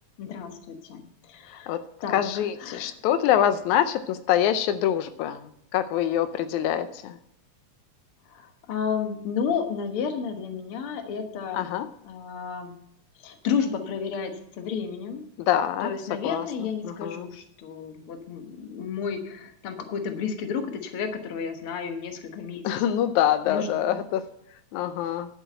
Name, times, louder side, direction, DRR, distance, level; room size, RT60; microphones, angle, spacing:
voice 1, 0.2-2.9 8.3-11.6 12.0-12.7 13.2-15.2 15.8-22.6 23.5-23.7, left 6 dB, 55° left, 6 dB, 2.0 m, -32 dB
voice 2, 2.1-5.4 5.7-7.1 11.5-11.9 15.5-15.9 16.2-16.4 16.8-17.2 22.6-24.2 24.7-25.3, left 10 dB, 85° left, 11 dB, 2.0 m, -24 dB
11.0 x 7.9 x 7.8 m, 0.74 s
omnidirectional pair, 3.3 m